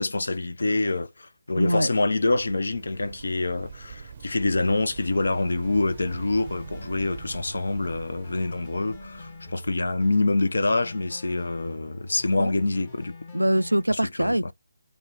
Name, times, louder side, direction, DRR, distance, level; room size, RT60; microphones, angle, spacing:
voice 1, 0.0-13.2 13.9-14.5, left 2 dB, 65° left, 0.5 m, -26 dB
voice 2, 1.6-1.9 12.4-12.5 13.3-14.5, right 1 dB, 90° right, 0.3 m, -23 dB
sound 1, 2.0-9.7, right 6 dB, 35° right, 0.6 m, -43 dB
sound 2, 5.1-13.8, left 3 dB, 25° left, 0.9 m, -45 dB
3.0 x 2.2 x 3.9 m
figure-of-eight pair, 150°, 0 cm